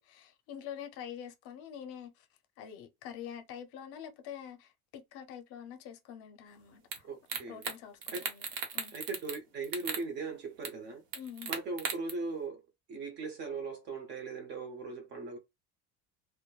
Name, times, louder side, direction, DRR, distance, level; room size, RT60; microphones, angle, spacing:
voice 1, 0.0-2.3 2.6-7.1 7.5-8.5 8.7-9.0 11.1-11.6, left 9 dB, 50° left, 0.6 m, -46 dB
sound 1, 6.9-7.0 7.3-7.8 8.0-9.4 9.6-10.0 10.6-10.7 11.1-12.1, right 6 dB, 80° right, 1.0 m, -36 dB
voice 2, 7.1-7.7 8.1-8.2 8.9-11.0 11.5-12.6 12.9-15.4, right 3 dB, 35° right, 0.7 m, -39 dB
3.0 x 2.2 x 2.2 m
cardioid pair, 160°, 31 cm